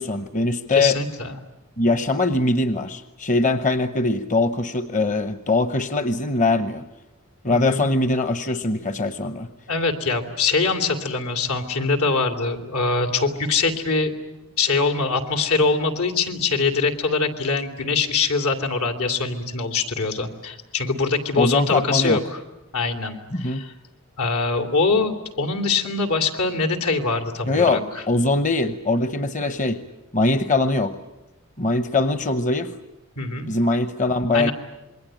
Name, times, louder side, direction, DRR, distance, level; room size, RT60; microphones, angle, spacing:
voice 1, 0.0-1.0 1.8-6.9 7.4-9.5 21.4-22.2 23.3-23.6 27.5-29.8 30.1-31.0 31.6-32.7 33.5-34.5, left 2 dB, 35° left, 11 dB, 0.8 m, -22 dB
voice 2, 0.7-1.4 7.5-7.8 9.7-14.1 14.6-22.4 22.7-23.7 24.2-27.8 33.2-33.5 34.3-34.5, left 4 dB, 85° left, 6 dB, 2.8 m, -23 dB
27.5 x 22.0 x 8.9 m, 0.96 s
head